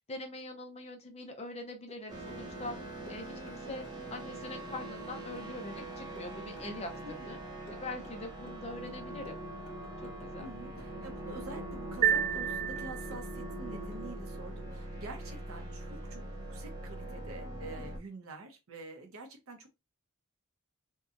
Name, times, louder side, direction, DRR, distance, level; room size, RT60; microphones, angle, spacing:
voice 1, 0.1-2.8 3.1-3.9 4.1-7.4 7.7-9.4 10.0-10.5, left 2 dB, 30° left, 0.6 m, -43 dB
sound 1, 1.9-2.4 2.7-4.3 4.6-7.4 7.7-8.6 8.9-10.5 10.8-11.7 12.0-13.6 13.9-14.1, equal, 80° left, 1.0 m, -55 dB
sound 2, 2.1-18.0, right 1 dB, 20° right, 0.8 m, -42 dB
voice 2, 10.4-19.7, right 2 dB, 70° right, 0.8 m, -47 dB
sound 3, 12.0-13.5, right 9 dB, 40° right, 0.3 m, -30 dB
2.8 x 2.2 x 2.5 m
head